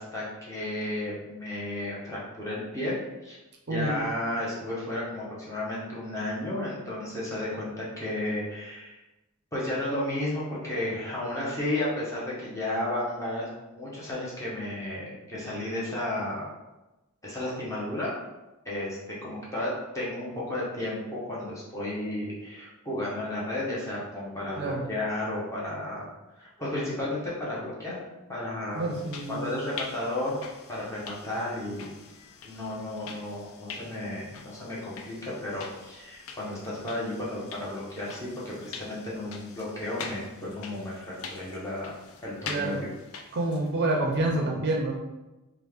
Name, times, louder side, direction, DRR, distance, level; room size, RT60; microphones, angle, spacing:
voice 1, 0.0-2.9 3.2-3.4 3.7-9.0 9.5-16.5 17.2-18.1 18.6-26.1 26.4-28.0 28.3-28.9 29.3-30.4 30.7-31.9 32.4-41.9 42.2-42.9, left 1 dB, 15° left, -7 dB, 0.9 m, -33 dB
voice 2, 24.6-24.9 28.7-29.4 42.5-42.8 43.3-44.9, right 2 dB, 50° right, 0 dB, 0.5 m, -28 dB
sound 1, 28.8-43.8, left 5 dB, 70° left, 0.4 m, -44 dB
3.2 x 2.4 x 3.4 m, 1.0 s
head